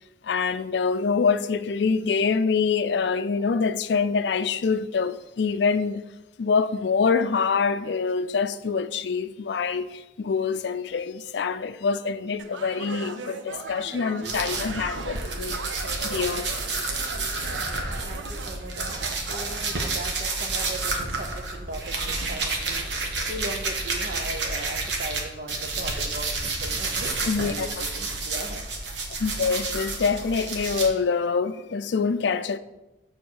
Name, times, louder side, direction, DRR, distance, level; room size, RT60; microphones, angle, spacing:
voice 1, 0.2-6.0 6.4-15.6 16.0-16.5 27.3-27.8 29.2-32.6, left 5 dB, 65° left, 0.4 m, -25 dB
sound 1, 12.4-19.9, right 4 dB, 90° right, 0.6 m, -38 dB
sound 2, 14.2-25.2 25.5-30.9, right 3 dB, 70° right, 1.3 m, -30 dB
voice 2, 17.5-22.9 23.3-28.7, right 2 dB, 50° right, 0.8 m, -38 dB
7.1 x 3.6 x 6.3 m
head